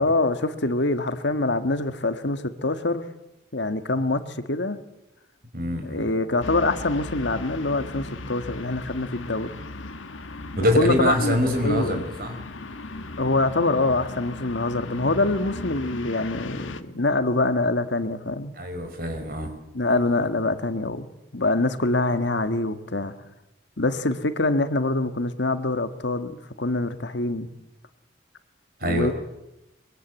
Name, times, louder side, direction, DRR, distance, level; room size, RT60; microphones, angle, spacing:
voice 1, 0.0-3.0 3.5-4.8 5.8-9.5 10.8-11.4 11.6-12.0 13.2-18.5 19.7-21.1 21.3-23.1 23.8-27.5 28.8-29.1, left 2 dB, 65° left, 9 dB, 1.7 m, -25 dB
voice 2, 5.5-6.1 10.6-12.4 18.6-19.5 28.8-29.1, left 1 dB, 50° right, 6 dB, 4.8 m, -24 dB
sound 1, 6.4-16.8, left 2 dB, 85° left, 1.6 m, -37 dB
23.5 x 23.5 x 9.4 m, 0.95 s
head